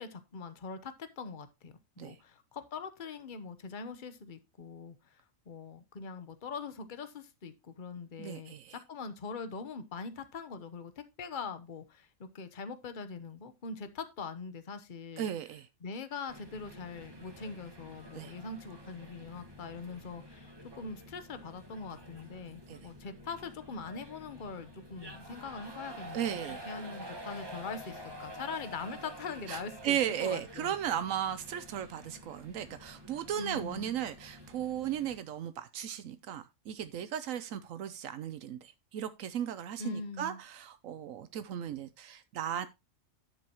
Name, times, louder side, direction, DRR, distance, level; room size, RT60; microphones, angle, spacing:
voice 1, 0.0-5.2 5.5-15.3 15.8-30.7 33.4-33.9 39.8-40.4, left 4 dB, 40° left, 1.1 m, -42 dB
voice 2, 8.2-8.7 15.2-15.7 18.1-18.3 22.7-22.8 26.1-26.6 29.5-42.7, right 10 dB, 85° right, 1.1 m, -36 dB
sound 1, 16.3-35.2, equal, 20° right, 1.5 m, -49 dB
10.5 x 7.0 x 3.0 m
omnidirectional pair, 1.4 m